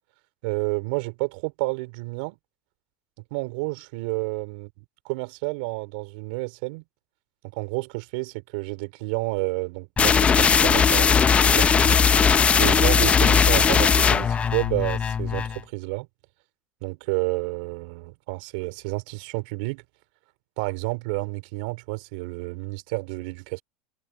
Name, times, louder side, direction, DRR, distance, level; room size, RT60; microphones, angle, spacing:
voice 1, 0.4-2.4 3.3-4.7 5.1-6.8 7.5-12.0 12.6-16.1 16.8-19.8 20.6-23.6, right 28 dB, 70° right, 4.1 m, -30 dB
sound 1, 10.0-15.6, left 6 dB, 25° left, 0.9 m, -19 dB
hypercardioid pair, 95°, 5 cm